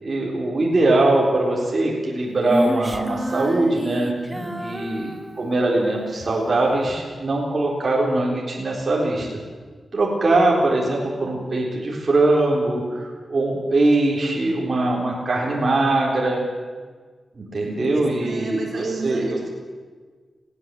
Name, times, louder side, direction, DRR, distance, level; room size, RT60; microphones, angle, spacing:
voice 1, 0.0-4.1 4.6-9.3 9.9-16.4 17.4-19.3, right 2 dB, 30° right, -3 dB, 3.9 m, -21 dB
Female singing, 2.5-6.0, right 1 dB, 10° right, 1.1 m, -29 dB
voice 2, 4.3-4.7 17.9-19.5, right 3 dB, 50° right, 0 dB, 4.0 m, -32 dB
20.5 x 16.5 x 7.7 m, 1.5 s
wide cardioid pair, 175°, 0 cm